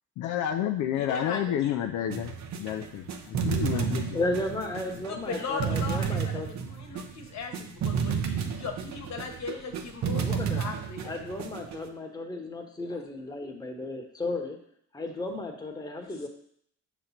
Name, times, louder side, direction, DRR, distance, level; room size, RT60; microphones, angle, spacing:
voice 1, 0.2-4.2, left 10 dB, 80° left, 5 dB, 0.5 m, -30 dB
voice 2, 0.9-1.8 3.7-3.8 5.1-11.3 12.9-13.0 16.0-16.3, left 5 dB, 65° left, 3 dB, 1.2 m, -38 dB
sound 1, 2.1-11.9, right 7 dB, 65° right, 0.8 m, -32 dB
voice 3, 4.1-6.5 10.2-10.6 11.0-14.6 14.9-16.3, left 2 dB, 15° left, 2 dB, 1.1 m, -34 dB
6.4 x 3.1 x 5.6 m, 0.66 s
cardioid pair, 90°, 30 cm